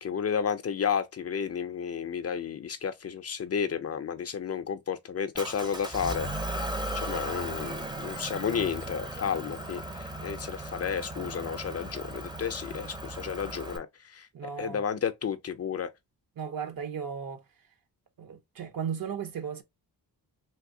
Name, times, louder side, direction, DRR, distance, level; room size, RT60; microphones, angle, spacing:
voice 1, 0.0-6.3 6.9-15.9, left 7 dB, 40° left, 0.4 m, -32 dB
Motor vehicle (road) / Engine, 5.3-13.8, right 1 dB, 10° right, 0.5 m, -36 dB
voice 2, 14.3-14.8 16.4-17.4 18.2-19.6, right 7 dB, 60° right, 0.8 m, -35 dB
3.4 x 2.6 x 2.5 m
wide cardioid pair, 130°, 38 cm